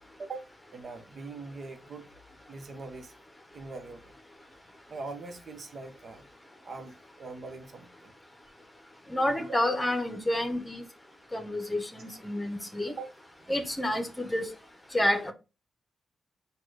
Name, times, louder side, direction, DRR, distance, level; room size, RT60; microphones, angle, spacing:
voice 1, 0.2-2.1 2.5-3.1 3.5-4.1 4.9-6.2 6.6-8.1 9.4-9.6 12.9-13.1 13.4-13.6, right 3 dB, 55° right, 1.0 m, -42 dB
voice 2, 9.1-10.8 11.3-12.9 13.5-14.5 14.9-15.3, left 1 dB, 15° left, 1.0 m, -29 dB
4.2 x 2.4 x 4.8 m
cardioid pair, 65°, 0 cm